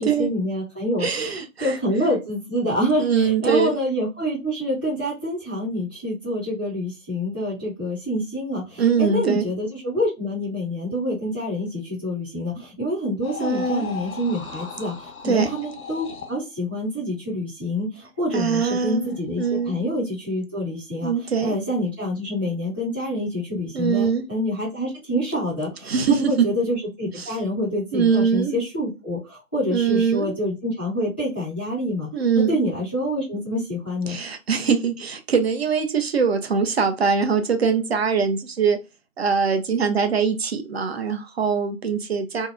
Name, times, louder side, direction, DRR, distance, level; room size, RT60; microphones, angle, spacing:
voice 1, 0.0-1.3 1.6-32.1 32.3-34.2, equal, 10° left, -12 dB, 0.4 m, -27 dB
voice 2, 1.0-1.8 3.0-3.7 8.8-9.4 13.4-13.9 15.2-15.5 18.3-19.8 21.0-21.6 23.7-24.2 25.9-26.5 27.1-27.4 27.9-28.6 29.7-30.3 32.1-32.6 34.1-38.8 39.2-42.5, right 6 dB, 50° right, 7 dB, 0.4 m, -22 dB
sound 1, 13.2-16.4 19.0-19.7, left 6 dB, 80° left, 0.8 m, -37 dB
2.6 x 2.0 x 2.4 m, 0.26 s
figure-of-eight pair, 135°, 41 cm